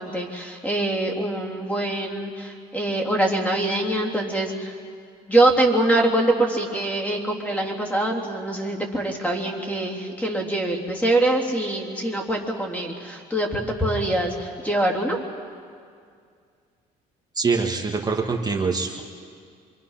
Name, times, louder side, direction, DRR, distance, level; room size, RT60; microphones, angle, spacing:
voice 1, 0.0-4.8 5.2-15.2, right 1 dB, 10° left, 0 dB, 3.5 m, -24 dB
voice 2, 17.4-19.0, right 4 dB, 25° right, 2 dB, 2.0 m, -24 dB
27.0 x 24.0 x 5.8 m, 2.2 s
cardioid pair, 110°, 17 cm